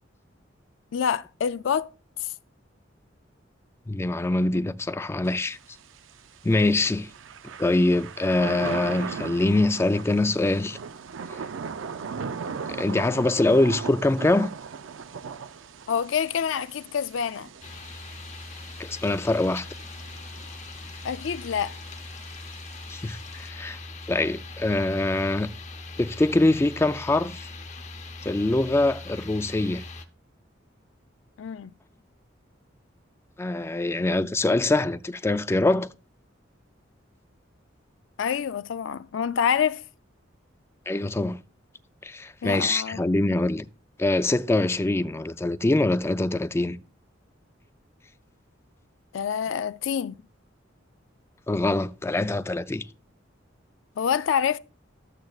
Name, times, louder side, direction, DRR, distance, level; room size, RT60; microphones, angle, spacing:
voice 1, 0.9-1.9 2.2-2.3 4.5-4.6 15.9-17.5 21.0-21.8 31.4-31.7 38.2-39.8 42.4-43.0 49.1-50.2 54.0-54.6, left 7 dB, 80° left, 0.4 m, -27 dB
voice 2, 3.9-5.6 6.4-7.1 7.6-10.8 12.7-14.5 18.8-19.6 22.9-23.8 24.1-25.5 26.0-27.5 28.2-29.8 33.4-35.9 40.9-41.4 42.0-43.7 44.0-46.8 51.5-52.8, left 2 dB, 15° left, 0.3 m, -24 dB
Thunder / Rain, 5.3-23.5, right 5 dB, 90° right, 0.5 m, -39 dB
sound 1, 17.6-30.1, left 3 dB, 40° left, 0.7 m, -41 dB
12.5 x 7.7 x 2.4 m
head